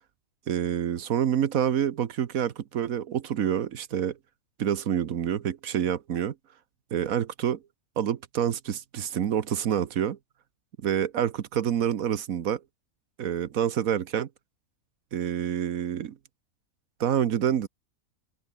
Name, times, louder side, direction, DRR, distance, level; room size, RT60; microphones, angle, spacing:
voice 1, 0.5-4.2 4.6-6.3 6.9-7.6 8.0-10.2 10.8-12.6 13.2-14.3 15.1-16.2 17.0-17.7, right 9 dB, 70° right, 1.4 m, -27 dB
omnidirectional pair, 1.5 m